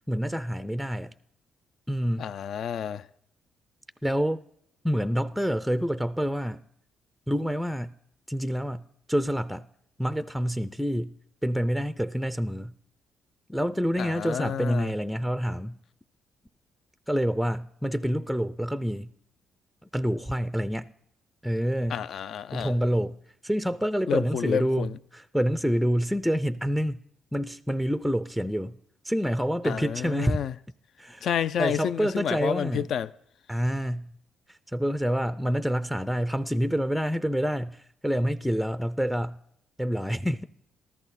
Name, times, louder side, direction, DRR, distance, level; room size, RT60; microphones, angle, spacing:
voice 1, 0.1-1.1 1.9-2.3 4.0-4.4 4.8-6.6 7.3-7.9 8.3-9.7 10.0-11.1 11.4-12.7 13.5-15.8 17.1-19.1 19.9-20.9 21.4-22.0 22.5-23.2 23.4-27.0 27.3-28.8 29.0-30.4 31.0-31.3 31.6-32.9 33.5-34.1 34.5-39.4 39.8-40.4, equal, ahead, 0.4 m, -27 dB
voice 2, 2.2-3.1 14.0-14.9 21.9-22.7 24.1-25.0 29.6-30.5 31.2-33.1, left 9 dB, 65° left, 0.4 m, -30 dB
13.5 x 13.5 x 4.1 m
cardioid pair, 90°, 0 cm